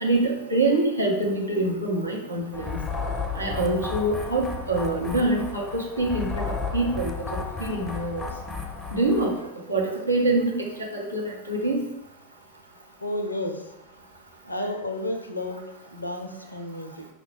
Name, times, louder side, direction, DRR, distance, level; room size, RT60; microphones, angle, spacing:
voice 1, 0.0-2.8 3.4-6.4 6.7-8.2 8.9-9.3 9.7-10.7 10.9-11.8, right 2 dB, 85° right, -2 dB, 0.7 m, -25 dB
sound 1, 2.5-9.4, left 4 dB, 10° left, 0.5 m, -33 dB
voice 2, 13.0-13.7 14.4-17.1, left 1 dB, 85° left, 5 dB, 0.4 m, -32 dB
4.9 x 2.2 x 3.1 m, 0.90 s
figure-of-eight pair, 90°, 0 cm